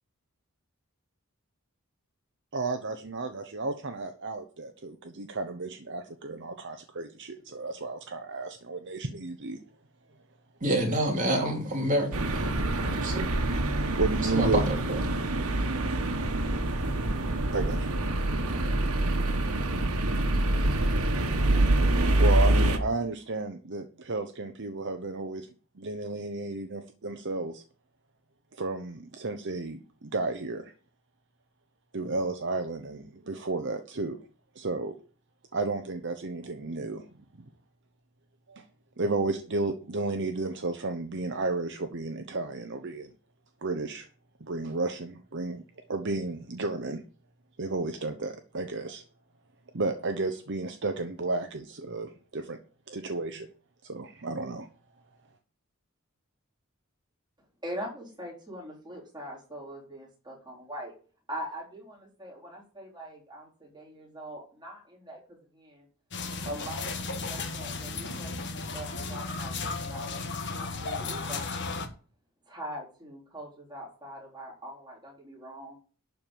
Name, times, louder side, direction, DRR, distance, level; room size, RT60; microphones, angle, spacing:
voice 1, 2.5-9.6 13.1-13.3 14.0-14.6 17.5-17.9 22.2-25.5 25.8-27.6 28.5-30.7 31.9-34.2 34.5-34.9 35.5-37.0 38.5-38.6 39.0-43.1 43.6-44.1 44.4-47.0 47.6-49.0 49.7-52.6 52.9-53.5 53.8-54.7, right 3 dB, 55° right, 0.9 m, -32 dB
voice 2, 10.6-13.3 14.3-15.0, right 1 dB, 35° right, 3.1 m, -28 dB
sound 1, 12.1-22.8, right 1 dB, 85° right, 1.5 m, -26 dB
voice 3, 57.6-60.9 61.3-65.9 66.5-71.8 72.5-75.8, equal, 20° right, 4.3 m, -42 dB
sound 2, 66.1-71.9, left 3 dB, 55° left, 1.5 m, -34 dB
12.0 x 4.7 x 7.4 m
head